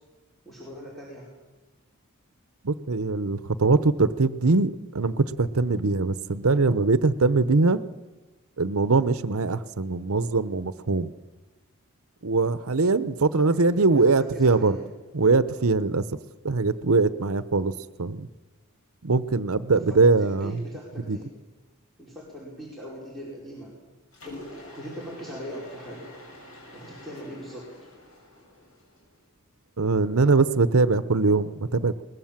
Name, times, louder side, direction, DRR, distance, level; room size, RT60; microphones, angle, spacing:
voice 1, 0.4-1.3 13.4-14.9 19.7-21.3 22.0-23.7 24.2-26.1 26.7-27.8, equal, ahead, -6 dB, 5.0 m, -40 dB
voice 2, 2.6-7.8 8.6-11.1 12.2-14.8 15.1-16.0 16.4-17.7 18.0-18.3 19.0-20.6 21.1-21.2 29.8-32.0, right 3 dB, 75° right, 14 dB, 0.9 m, -22 dB
Mechanisms, 24.1-29.2, left 1 dB, 70° left, 7.4 m, -47 dB
23.0 x 20.5 x 7.4 m, 1.2 s
head